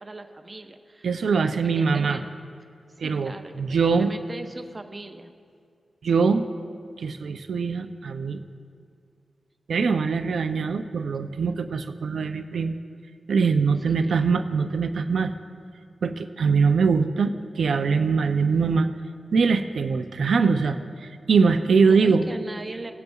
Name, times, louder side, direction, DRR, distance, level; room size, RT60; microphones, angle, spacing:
voice 1, 0.0-1.1 1.4-2.3 3.0-5.3 13.9-14.2 21.8-22.9, right 2 dB, 30° right, 6 dB, 0.7 m, -40 dB
voice 2, 1.0-2.2 3.0-4.1 6.0-6.5 7.0-8.4 9.7-12.7 13.3-15.3 16.0-18.9 19.3-22.3, right 5 dB, 75° right, 7 dB, 0.4 m, -22 dB
19.5 x 7.9 x 2.3 m, 2.2 s
cardioid pair, 75°, 0 cm